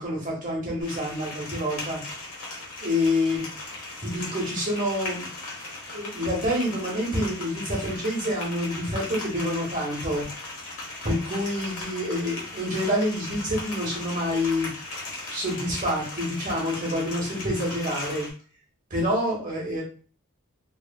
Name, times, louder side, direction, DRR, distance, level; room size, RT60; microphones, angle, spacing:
voice 1, 0.0-2.0 2.8-3.5 4.0-5.3 5.9-10.3 11.0-14.7 15.3-18.3 18.9-19.8, left 1 dB, 40° right, -3 dB, 1.1 m, -27 dB
sound 1, 0.8-18.3, left 2 dB, 85° left, 1.1 m, -37 dB
3.0 x 2.3 x 2.2 m, 0.39 s
head